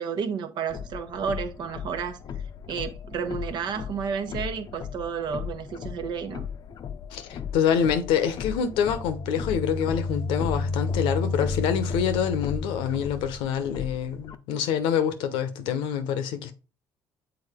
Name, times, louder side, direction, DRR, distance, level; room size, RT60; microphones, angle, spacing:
voice 1, 0.0-2.2 2.7-6.5, right 6 dB, 60° right, 0.9 m, -31 dB
sound 1, 0.7-14.4, left 8 dB, 50° left, 0.6 m, -38 dB
voice 2, 7.1-16.5, left 8 dB, 80° left, 0.9 m, -26 dB
sound 2, 8.7-13.4, left 3 dB, 85° right, 0.9 m, -31 dB
7.0 x 3.8 x 3.5 m
supercardioid pair, 65°, 8 cm